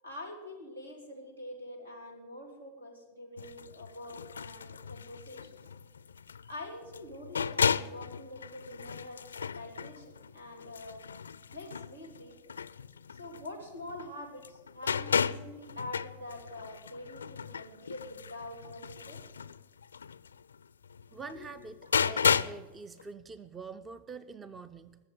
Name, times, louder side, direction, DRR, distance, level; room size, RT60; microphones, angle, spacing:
voice 1, 0.0-5.6 6.5-11.0 11.5-12.3 13.2-19.2 21.3-21.5, left 1 dB, 85° right, 2 dB, 3.3 m, -45 dB
sound 1, 3.4-14.1 14.4-22.7 23.0-23.1, left 6 dB, 70° left, 0.4 m, -34 dB
voice 2, 21.1-25.0, right 4 dB, 20° right, 15 dB, 0.5 m, -45 dB
21.0 x 7.3 x 7.8 m, 1.2 s
figure-of-eight pair, 90°, 0 cm